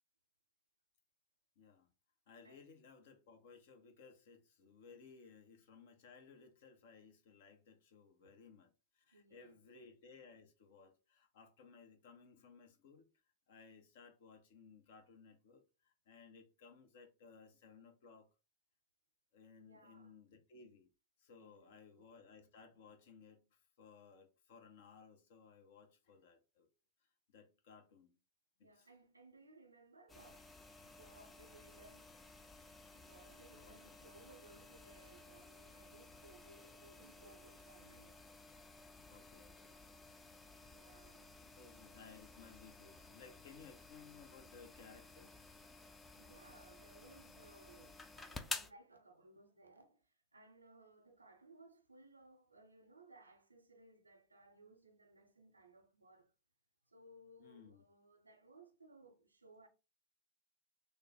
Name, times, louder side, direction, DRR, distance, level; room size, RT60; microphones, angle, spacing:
voice 1, 1.6-1.9 2.3-13.1 13.5-18.3 19.3-20.9 21.2-26.7 27.3-28.2 28.6-28.9 33.5-34.1 39.1-39.8 41.4-45.3 57.4-57.8, left 5 dB, 60° left, 0.8 m, -60 dB
voice 2, 9.1-9.8 19.6-20.1 21.4-22.1 28.6-30.6 30.8-32.2 32.9-38.2 40.6-41.4 46.2-56.3 56.9-59.7, right 2 dB, 90° right, 0.7 m, -62 dB
sound 1, 30.1-48.7, left 3 dB, 15° left, 0.5 m, -53 dB
3.4 x 2.2 x 4.1 m
figure-of-eight pair, 95°, 0 cm